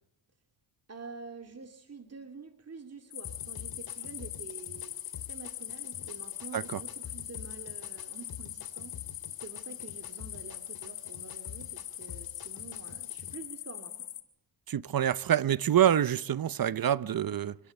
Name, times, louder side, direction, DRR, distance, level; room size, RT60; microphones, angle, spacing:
voice 1, 0.9-5.0 5.3-8.9 9.4-14.1, right 4 dB, 30° right, 2.5 m, -47 dB
sound 1, 3.1-14.2, left 12 dB, 80° left, 2.3 m, -41 dB
sound 2, 3.2-13.3, left 7 dB, 50° left, 2.6 m, -49 dB
voice 2, 14.7-17.6, right 10 dB, 45° right, 0.9 m, -26 dB
26.0 x 12.0 x 9.9 m
cardioid pair, 65°, 48 cm